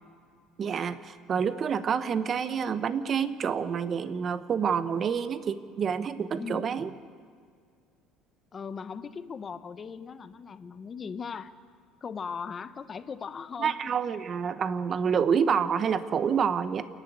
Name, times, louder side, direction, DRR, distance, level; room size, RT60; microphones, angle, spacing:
voice 1, 0.6-6.9 13.6-16.9, right 7 dB, 30° right, 13 dB, 0.8 m, -28 dB
voice 2, 6.4-6.8 8.5-11.5 12.0-13.8, left 6 dB, 25° left, 13 dB, 0.8 m, -38 dB
28.5 x 10.5 x 9.4 m, 2.1 s
cardioid pair, 150°, 0 cm